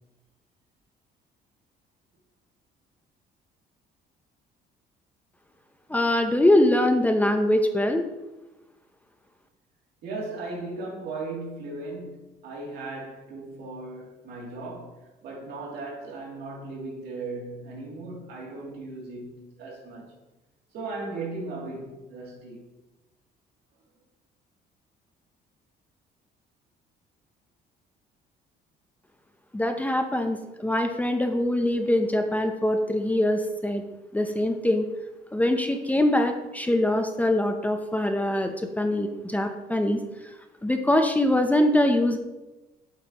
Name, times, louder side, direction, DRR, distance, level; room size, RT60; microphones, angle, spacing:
voice 1, 5.9-8.1 29.5-33.8 34.1-34.8 35.3-40.3 40.6-42.2, left 1 dB, 10° left, 0.7 m, -23 dB
voice 2, 10.0-20.2 20.7-22.7, right 3 dB, 75° right, 2.8 m, -37 dB
8.0 x 8.0 x 3.0 m
cardioid pair, 110°, 17 cm